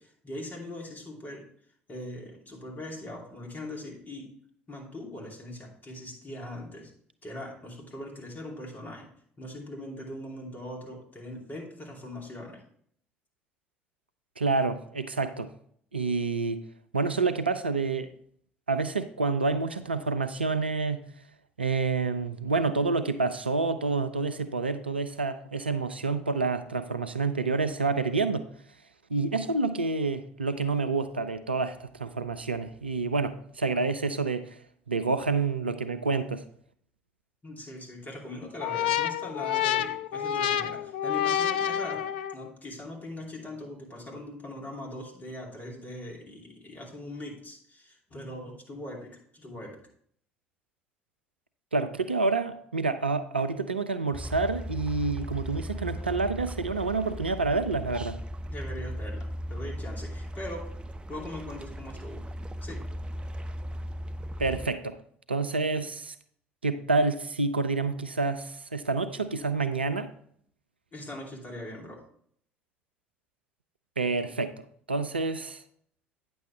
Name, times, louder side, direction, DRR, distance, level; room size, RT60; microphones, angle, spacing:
voice 1, 0.0-1.5 1.9-4.3 4.7-6.9 7.2-9.1 9.4-12.6 37.4-42.1 42.3-49.8 58.5-60.6 61.1-62.3 62.6-62.8 70.9-72.0, left 1 dB, 35° left, 2.7 m, -41 dB
voice 2, 14.4-15.5 15.9-16.6 16.9-18.1 18.7-21.0 21.6-28.5 29.1-34.5 34.9-36.4 51.7-58.2 64.4-65.0 65.3-66.1 66.6-70.1 74.0-74.5 74.9-75.6, right 3 dB, 90° right, 0.4 m, -28 dB
sound 1, 38.6-42.5, left 10 dB, 70° left, 0.3 m, -28 dB
sound 2, 54.1-64.7, equal, 20° right, 0.5 m, -37 dB
9.2 x 7.0 x 3.1 m
figure-of-eight pair, 55°, 5 cm